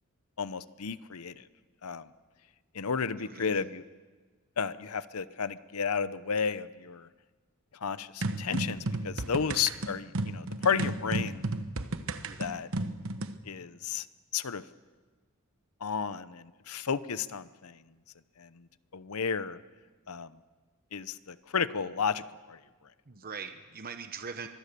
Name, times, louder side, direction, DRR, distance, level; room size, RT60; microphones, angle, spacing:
voice 1, 0.4-1.4 1.8-2.0 2.7-3.8 4.6-7.1 7.8-11.4 12.4-12.7 13.5-14.1 14.3-14.6 15.8-17.8 18.4-18.6 18.9-19.6 20.1-20.3 20.9-22.6, left 6 dB, 85° left, 15 dB, 0.8 m, -32 dB
voice 2, 3.1-3.7 12.2-12.4 23.1-24.5, right 5 dB, 45° right, 7 dB, 1.0 m, -42 dB
sound 1, 8.2-13.4, right 2 dB, 65° right, 1.2 m, -33 dB
24.5 x 20.5 x 6.9 m, 1.4 s
head